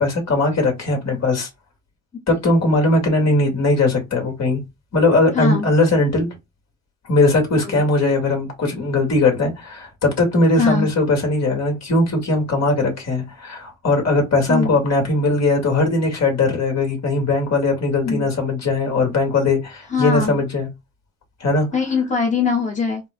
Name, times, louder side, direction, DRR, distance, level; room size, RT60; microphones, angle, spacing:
voice 1, 0.0-1.5 2.3-4.6 4.9-6.4 7.1-20.7 21.4-21.7, left 2 dB, 60° left, 2.2 m, -19 dB
voice 2, 5.3-5.7 7.6-7.8 10.6-10.9 14.5-14.8 18.0-18.3 19.9-20.4 21.7-23.0, left 5 dB, 25° left, 1.3 m, -21 dB
4.2 x 2.3 x 3.7 m
supercardioid pair, 50°, 30 cm